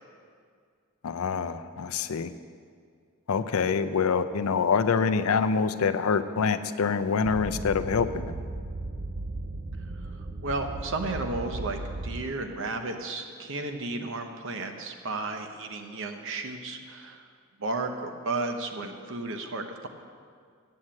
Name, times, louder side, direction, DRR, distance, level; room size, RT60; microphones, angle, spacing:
voice 1, 1.0-2.3 3.3-8.3, left 5 dB, 90° left, 11 dB, 0.5 m, -26 dB
sound 1, 7.2-12.3, right 2 dB, 40° right, 0.6 m, -36 dB
voice 2, 10.4-17.2 17.6-19.9, right 2 dB, 65° right, 5 dB, 1.0 m, -33 dB
8.6 x 8.0 x 7.5 m, 2.1 s
head